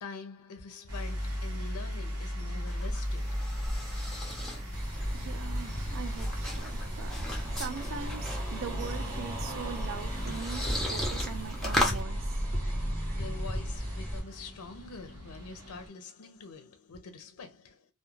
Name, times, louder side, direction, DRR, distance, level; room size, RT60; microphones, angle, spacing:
voice 1, 0.0-3.8 12.8-17.9, left 4 dB, 70° left, 0.5 m, -45 dB
sound 1, 0.9-15.9, equal, 90° right, 0.9 m, -39 dB
sound 2, 2.4-12.0, left 1 dB, ahead, 0.6 m, -36 dB
voice 2, 4.4-4.7 5.1-12.3, right 6 dB, 60° right, 0.3 m, -42 dB
sound 3, 4.7-14.2, equal, 40° right, 1.0 m, -36 dB
2.3 x 2.2 x 2.9 m
head